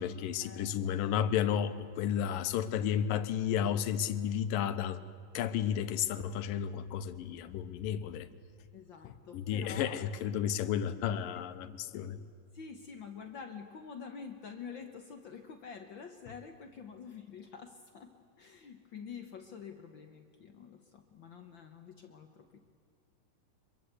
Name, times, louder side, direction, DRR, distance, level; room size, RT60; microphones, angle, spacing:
voice 1, 0.0-5.0 5.3-8.3 9.0-12.2, left 9 dB, 90° left, 2.6 m, -32 dB
voice 2, 8.7-10.0 11.3-11.8 12.5-22.6, left 6 dB, 70° left, 1.1 m, -47 dB
25.0 x 23.0 x 8.1 m
omnidirectional pair, 3.9 m